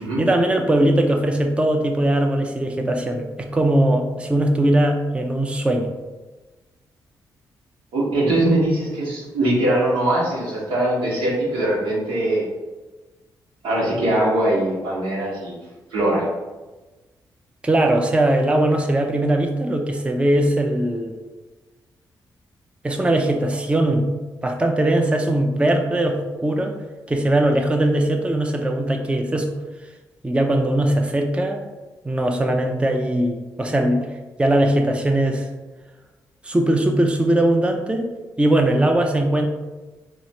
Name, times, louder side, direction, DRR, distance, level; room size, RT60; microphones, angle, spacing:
voice 1, 0.0-5.9 17.6-21.2 22.8-24.1 24.4-26.8 27.1-29.5 30.2-31.6 32.0-34.1 34.4-35.5 36.4-39.4, right 1 dB, 15° right, 3 dB, 0.5 m, -20 dB
voice 2, 7.9-12.4 13.6-15.5 15.9-16.3, right 1 dB, 85° right, -5 dB, 1.1 m, -21 dB
3.0 x 2.4 x 4.1 m, 1.2 s
supercardioid pair, 60°, 8 cm